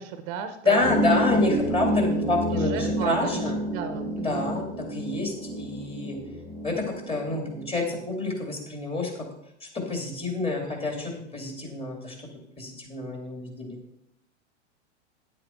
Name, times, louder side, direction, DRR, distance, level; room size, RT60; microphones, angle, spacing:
voice 1, 0.0-1.0 2.4-4.6, right 8 dB, 45° right, 8 dB, 1.0 m, -34 dB
voice 2, 0.6-3.5 4.2-6.2 6.6-9.1 9.6-12.3 12.6-13.8, left 3 dB, 15° left, 1 dB, 2.8 m, -28 dB
sound 1, 0.8-7.8, right 1 dB, 45° left, 3.9 m, -29 dB
9.9 x 8.0 x 4.5 m, 0.75 s
hypercardioid pair, 120°, 35 cm